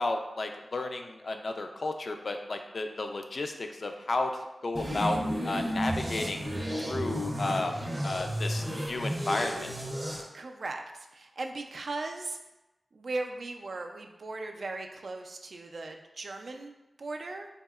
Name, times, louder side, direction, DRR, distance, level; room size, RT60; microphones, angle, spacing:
voice 1, 0.0-4.3 4.6-5.2 5.4-6.4 6.8-7.8 8.0-9.7, left 2 dB, 60° left, 4 dB, 0.3 m, -32 dB
sound 1, 4.7-10.2, equal, 20° right, 0.6 m, -32 dB
voice 2, 10.3-10.8 11.1-12.4 12.9-17.5, right 3 dB, 70° right, 4 dB, 0.3 m, -38 dB
4.1 x 2.7 x 2.3 m, 0.99 s
wide cardioid pair, 80°, 0 cm